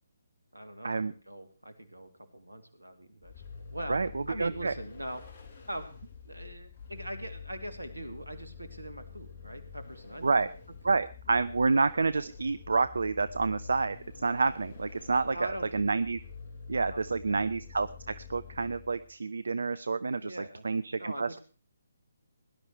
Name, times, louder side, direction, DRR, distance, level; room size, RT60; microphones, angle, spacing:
voice 1, 0.5-3.4 3.7-4.0 4.3-5.2 5.7-5.9 6.2-10.4 10.9-11.0 15.3-15.9 16.9-17.4 20.2-20.7 21.0-21.4, right 1 dB, 85° right, 9 dB, 2.7 m, -42 dB
Vehicle, 3.2-19.1, left 5 dB, 45° left, 2.8 m, -47 dB
voice 2, 3.9-4.7 10.2-10.5 10.8-16.2 16.7-20.4 20.6-21.4, right 4 dB, 65° right, 15 dB, 0.6 m, -29 dB
18.0 x 11.0 x 4.6 m, 0.38 s
figure-of-eight pair, 140°, 0 cm